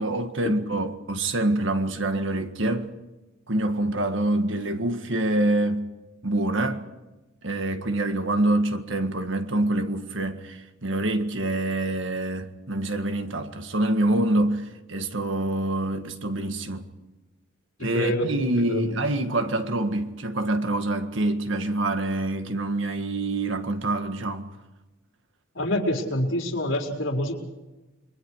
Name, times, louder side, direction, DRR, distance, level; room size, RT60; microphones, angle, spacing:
voice 1, 0.0-2.9 3.5-5.8 6.2-6.8 7.4-16.9 17.8-24.5, right 1 dB, 65° right, 1.8 m, -26 dB
voice 2, 17.9-18.3 18.6-18.9 25.5-27.3, left 1 dB, 70° left, 4.8 m, -26 dB
30.0 x 23.0 x 4.9 m
head